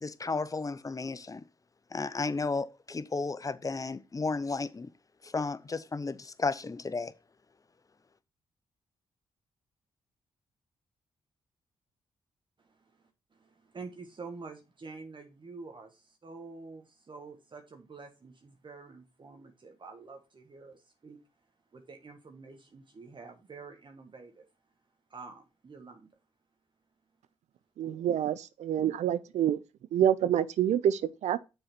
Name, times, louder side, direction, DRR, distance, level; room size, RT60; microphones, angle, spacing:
voice 1, 0.0-1.4 1.9-4.9 5.2-7.1, left 3 dB, 30° left, 0.7 m, -33 dB
voice 2, 12.6-21.2 21.7-24.5 25.1-26.1, right 4 dB, 45° right, 1.3 m, -48 dB
voice 3, 27.8-29.6 29.9-31.4, right 10 dB, 75° right, 0.6 m, -27 dB
6.7 x 4.0 x 5.9 m
supercardioid pair, 55°, 12 cm